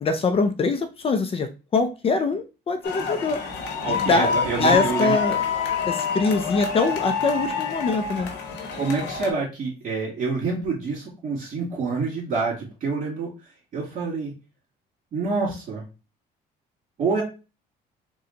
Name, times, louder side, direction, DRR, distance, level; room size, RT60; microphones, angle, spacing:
voice 1, 0.0-3.4 3.9-5.4 5.9-8.3, left 4 dB, 35° left, 7 dB, 0.5 m, -23 dB
sound 1, 2.8-9.3, left 5 dB, 85° left, 1.1 m, -27 dB
voice 2, 3.8-5.2 8.7-13.3 13.7-14.3 15.1-15.8 17.0-17.2, right 4 dB, 50° right, -6 dB, 2.3 m, -27 dB
4.2 x 2.3 x 3.9 m, 0.30 s
cardioid pair, 110°, 17 cm